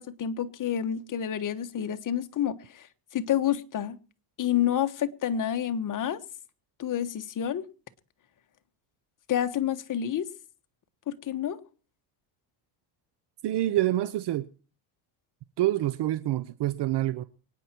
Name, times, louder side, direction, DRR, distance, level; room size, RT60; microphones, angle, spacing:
voice 1, 0.0-2.9 3.1-4.0 4.4-6.2 6.8-7.6 9.3-10.3 11.1-11.6, left 10 dB, 40° left, 1.4 m, -29 dB
voice 2, 13.4-14.5 15.6-17.2, right 14 dB, 55° right, 0.8 m, -26 dB
24.5 x 9.6 x 4.5 m
cardioid pair, 120°, 49 cm